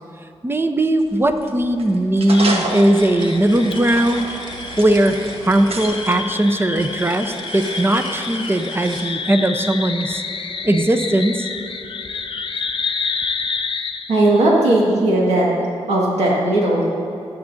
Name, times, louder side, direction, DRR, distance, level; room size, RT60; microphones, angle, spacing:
voice 1, 0.4-4.3 4.8-10.2 10.6-11.5, right 1 dB, 20° right, 8 dB, 0.8 m, -18 dB
sound 1, 1.0-6.1, right 2 dB, 65° right, 1.4 m, -30 dB
sound 2, 2.3-14.2, left 5 dB, 50° left, 0.7 m, -29 dB
sound 3, 2.5-9.1, right 1 dB, 45° right, 2.2 m, -36 dB
voice 2, 14.1-15.5 15.9-16.9, right 1 dB, 85° right, -4 dB, 1.9 m, -16 dB
18.5 x 8.3 x 2.7 m, 2.8 s
cardioid pair, 45°, 11 cm